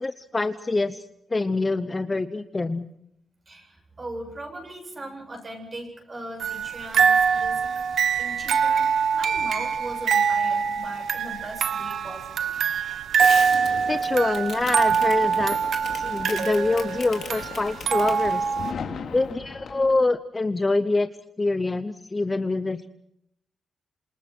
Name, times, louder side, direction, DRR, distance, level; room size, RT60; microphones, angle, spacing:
voice 1, 0.0-1.0 1.3-2.9 13.9-15.6 15.9-18.5 19.1-21.1 21.4-22.9, left 3 dB, 20° left, 10 dB, 0.9 m, -25 dB
voice 2, 3.5-8.9 9.1-12.6, right 1 dB, 25° right, 4 dB, 7.7 m, -39 dB
sound 1, 6.4-18.7, right 6 dB, 70° right, 1.6 m, -24 dB
Fireworks, 13.2-20.0, left 6 dB, 65° left, 3.1 m, -37 dB
28.0 x 27.5 x 4.6 m, 0.75 s
wide cardioid pair, 135°, 0 cm